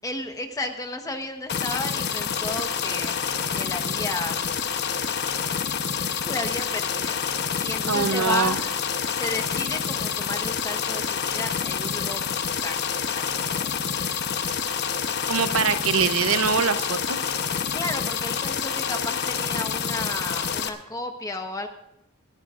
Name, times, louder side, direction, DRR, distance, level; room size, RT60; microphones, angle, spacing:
voice 1, 0.0-3.2 3.5-4.4 6.2-7.2 7.6-8.7 9.0-12.3 12.6-13.2 13.5-13.7 17.7-21.7, left 2 dB, 15° left, 5 dB, 1.1 m, -33 dB
sound 1, 1.5-20.7, left 7 dB, 50° left, 0.9 m, -28 dB
voice 2, 7.9-8.6 14.8-14.9 15.3-17.2, right 5 dB, 70° right, 11 dB, 0.8 m, -23 dB
20.5 x 14.5 x 2.5 m, 0.83 s
head